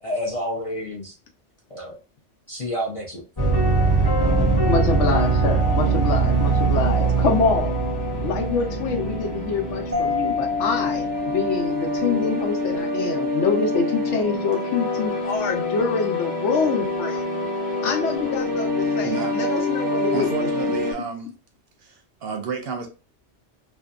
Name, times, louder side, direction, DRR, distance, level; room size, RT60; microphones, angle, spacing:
voice 1, 0.0-1.1 1.7-2.0 2.5-3.2, equal, 45° left, 0.4 m, -29 dB
sound 1, 3.4-20.9, right 1 dB, 20° left, 0.9 m, -23 dB
voice 2, 4.6-7.7 8.2-17.3 17.8-20.5, left 4 dB, 75° left, 0.9 m, -25 dB
Mallet percussion, 9.9-12.4, left 5 dB, 20° right, 0.5 m, -29 dB
voice 3, 19.0-19.4 20.1-21.3 21.8-22.9, right 5 dB, 65° right, 0.7 m, -31 dB
2.6 x 2.3 x 2.3 m
omnidirectional pair, 1.2 m